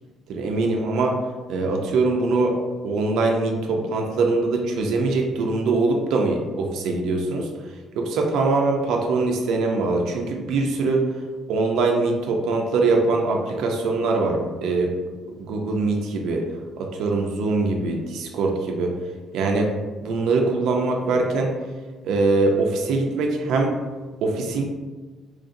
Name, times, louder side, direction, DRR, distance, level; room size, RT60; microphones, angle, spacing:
voice 1, 0.3-1.2 1.5-2.6 2.8-7.5 8.0-11.0 11.5-14.9 15.3-16.4 16.8-18.9 19.3-19.7 20.0-21.5 22.0-23.7 24.2-24.6, right 3 dB, 65° right, 1 dB, 0.4 m, -22 dB
3.1 x 2.5 x 3.7 m, 1.3 s
cardioid pair, 175°, 0 cm